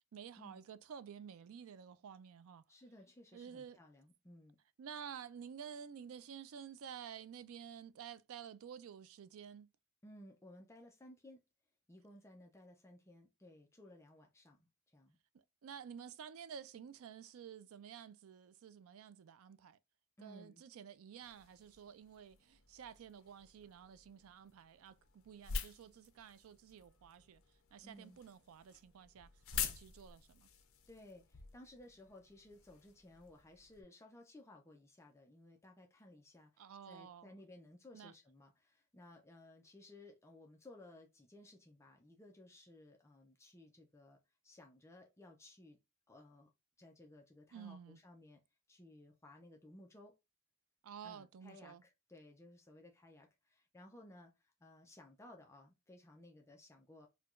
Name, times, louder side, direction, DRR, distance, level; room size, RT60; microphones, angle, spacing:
voice 1, 0.1-2.6 3.3-3.8 4.8-9.7 15.6-19.8 20.2-27.4 27.7-29.3 29.6-30.5 36.6-37.4 37.9-38.1 47.5-48.0 50.8-51.8, right 7 dB, 70° right, 0.4 m, -52 dB
voice 2, 2.7-4.6 10.0-11.4 11.9-15.2 20.2-20.6 27.8-28.2 30.9-44.2 44.4-45.8 46.1-46.5 46.8-48.4 48.7-50.1 51.0-57.1, left 1 dB, 15° left, 0.4 m, -59 dB
sound 1, 21.2-33.8, left 6 dB, 70° left, 0.7 m, -48 dB
4.4 x 2.2 x 2.4 m
head